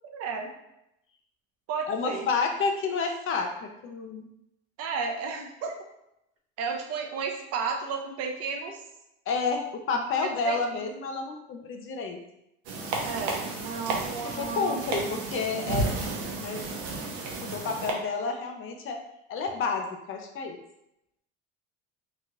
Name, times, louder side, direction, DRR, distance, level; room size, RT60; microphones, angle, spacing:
voice 1, 0.0-0.5 1.7-2.3 4.8-5.8 6.6-8.8 10.2-10.6 13.0-14.8, right 5 dB, 50° right, 3 dB, 0.6 m, -33 dB
voice 2, 1.9-4.3 9.3-12.2 14.2-15.9 16.4-16.6 17.5-19.0 19.3-20.6, left 4 dB, 40° left, 4 dB, 0.5 m, -30 dB
sound 1, 12.7-17.9, right 3 dB, 80° right, 0.7 m, -32 dB
2.9 x 2.4 x 2.8 m, 0.84 s
supercardioid pair, 100°, 32 cm